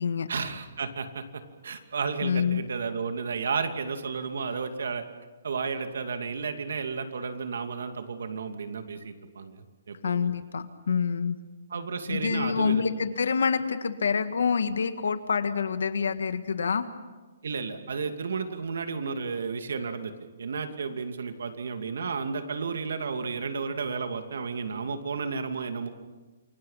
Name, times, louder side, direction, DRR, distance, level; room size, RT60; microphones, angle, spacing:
voice 1, 0.3-5.0 5.4-10.3 11.7-12.8 17.4-20.1 20.4-25.9, right 5 dB, 70° right, 7 dB, 2.5 m, -32 dB
voice 2, 2.2-2.6 10.0-11.4 12.1-16.8, left 6 dB, 75° left, 10 dB, 1.8 m, -27 dB
28.5 x 23.5 x 5.8 m, 1.2 s
hypercardioid pair, 175°, 0 cm